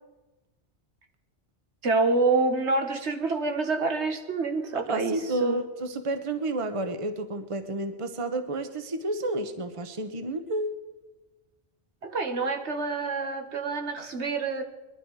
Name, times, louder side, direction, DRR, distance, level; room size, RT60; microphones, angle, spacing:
voice 1, 1.8-5.6 12.0-14.6, right 3 dB, 75° right, 5 dB, 1.7 m, -27 dB
voice 2, 4.7-10.7, right 2 dB, 30° right, 8 dB, 1.0 m, -30 dB
22.0 x 12.0 x 4.8 m, 1.1 s
omnidirectional pair, 1.2 m